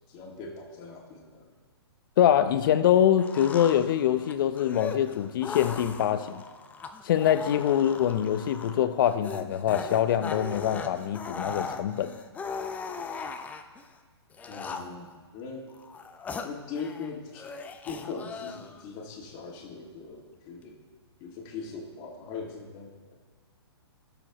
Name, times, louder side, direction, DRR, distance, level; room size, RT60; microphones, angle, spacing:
voice 1, 0.1-1.6 14.5-15.7 16.4-17.5 17.8-20.8 21.2-23.1, left 4 dB, 30° left, 0 dB, 2.0 m, -40 dB
voice 2, 2.2-6.4 7.0-12.1, left 10 dB, 50° left, 11 dB, 0.7 m, -24 dB
Male screaming very close to the mic, 3.2-13.8 14.3-15.1 15.7-17.1 17.3-18.8, left 5 dB, 10° left, 0.5 m, -39 dB
17.0 x 7.0 x 3.0 m, 1.4 s
hypercardioid pair, 130°, 14 cm